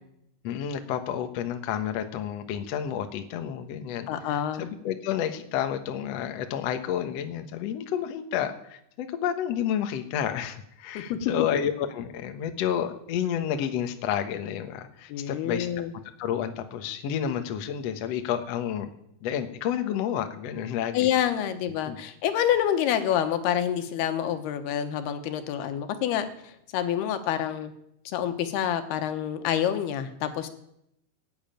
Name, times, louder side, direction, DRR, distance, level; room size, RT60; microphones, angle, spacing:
voice 1, 0.4-4.1 4.6-15.7 16.2-18.9 19.2-21.1 21.9-22.0, left 9 dB, 65° left, 7 dB, 1.7 m, -30 dB
voice 2, 4.1-4.6 10.9-11.2 15.1-15.9 20.9-27.7 28.1-30.5, left 10 dB, 90° left, 8 dB, 3.2 m, -27 dB
17.0 x 8.9 x 9.0 m, 0.77 s
omnidirectional pair, 4.4 m